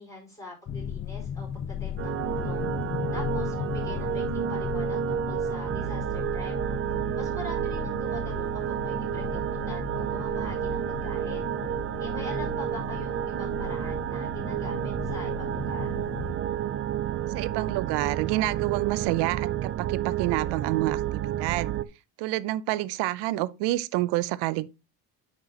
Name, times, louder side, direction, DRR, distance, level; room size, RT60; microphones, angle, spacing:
voice 1, 0.0-2.6 3.1-6.5 7.1-11.5 12.0-16.0, left 2 dB, 10° left, 4.7 m, -43 dB
sound 1, 0.7-16.3, left 8 dB, 30° left, 0.5 m, -36 dB
sound 2, 2.0-21.8, right 11 dB, 35° right, 0.4 m, -30 dB
voice 2, 17.3-21.7 22.2-24.7, right 17 dB, 90° right, 0.7 m, -28 dB
9.7 x 6.2 x 2.9 m
cardioid pair, 135°, 40 cm